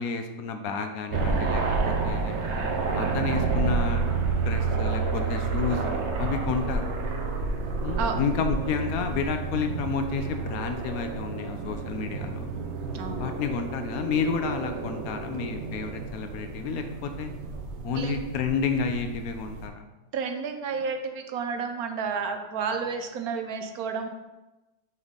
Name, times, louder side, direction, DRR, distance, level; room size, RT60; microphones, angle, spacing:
voice 1, 0.0-2.4 2.9-4.0 4.4-6.8 7.8-12.5 13.2-17.3 17.8-19.8, left 5 dB, 75° left, 6 dB, 1.1 m, -30 dB
sound 1, 1.1-19.7, right 4 dB, 55° right, 0.9 m, -30 dB
voice 2, 12.9-13.3 17.9-18.1 20.1-24.1, right 5 dB, 75° right, 6 dB, 1.2 m, -31 dB
6.1 x 5.6 x 3.7 m, 1.1 s
omnidirectional pair, 1.6 m